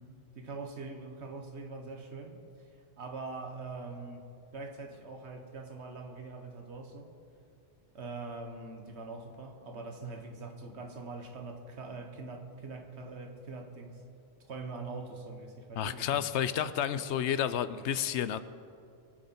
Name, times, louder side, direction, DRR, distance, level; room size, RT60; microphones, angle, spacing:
voice 1, 0.3-2.4 3.0-4.3 4.5-7.1 7.9-14.0 14.5-16.3, right 3 dB, 80° right, 4 dB, 1.6 m, -43 dB
voice 2, 15.8-18.4, left 9 dB, 85° left, 14 dB, 0.9 m, -31 dB
24.0 x 9.1 x 4.3 m, 2.5 s
omnidirectional pair, 1.1 m